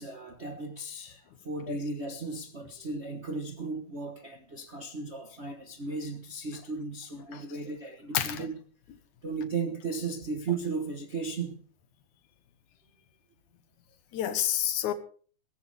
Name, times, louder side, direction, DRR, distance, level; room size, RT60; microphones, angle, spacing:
voice 1, 0.0-8.6 9.2-11.6, right 4 dB, 50° right, 0.7 m, -35 dB
voice 2, 8.1-8.5 14.1-14.9, left 10 dB, 75° left, 2.7 m, -29 dB
18.0 x 15.0 x 3.5 m
omnidirectional pair, 3.5 m